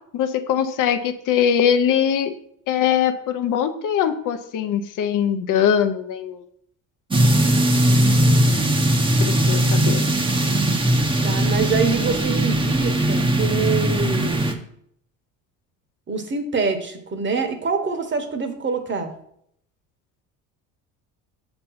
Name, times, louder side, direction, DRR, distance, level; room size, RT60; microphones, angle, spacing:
voice 1, 0.1-2.3 2.7-6.4 9.2-10.1, left 8 dB, 55° left, 9 dB, 0.7 m, -21 dB
sound 1, 7.1-14.5, right 1 dB, 15° right, 0.8 m, -19 dB
voice 2, 11.2-14.4 16.1-19.1, right 4 dB, 30° right, 6 dB, 1.1 m, -25 dB
6.5 x 3.0 x 5.6 m, 0.70 s
hypercardioid pair, 70°, 37 cm